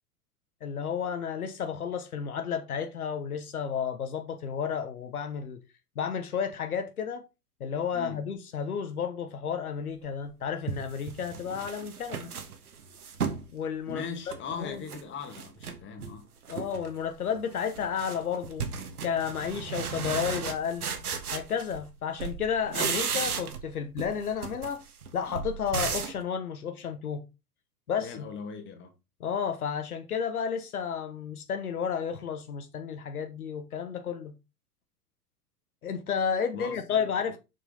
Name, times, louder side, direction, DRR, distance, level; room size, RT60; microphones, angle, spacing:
voice 1, 0.6-5.6 6.0-7.2 7.6-12.3 13.5-14.0 14.5-14.8 16.5-18.7 19.0-20.9 21.3-24.8 25.1-27.2 27.9-28.3 29.2-34.3 35.8-37.4, left 7 dB, 65° left, 1.2 m, -32 dB
sound 1, 10.0-10.1 10.7-13.5 13.9-15.0 15.3-16.1 16.5-16.9 17.2-21.9 22.2-23.7 24.0-26.2, right 6 dB, 70° right, 1.6 m, -35 dB
voice 2, 13.9-16.3 28.0-28.9 36.5-37.1, left 5 dB, 25° left, 2.0 m, -39 dB
6.6 x 6.1 x 3.8 m
figure-of-eight pair, 95°, 47 cm